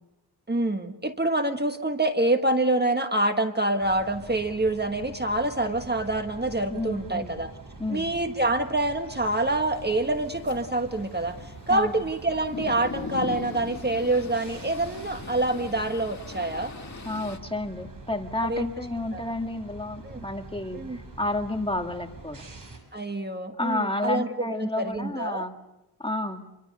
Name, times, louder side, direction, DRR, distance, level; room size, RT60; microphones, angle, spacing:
voice 1, 0.5-7.5 7.9-11.3 11.7-16.7 18.4-18.6 19.1-19.2 20.0-20.2 20.7-21.0 22.9-25.5, right 2 dB, 25° right, 7 dB, 1.4 m, -26 dB
sound 1, 3.8-22.8, right 3 dB, 55° right, 5.4 m, -45 dB
voice 2, 6.7-7.3 7.8-8.1 11.7-11.9 17.1-22.4 23.6-25.5 26.0-26.4, left 2 dB, 15° left, 5 dB, 1.8 m, -31 dB
sound 2, 9.8-17.4, left 4 dB, 45° left, 1.9 m, -40 dB
27.0 x 23.0 x 6.7 m, 0.97 s
wide cardioid pair, 90°, 40 cm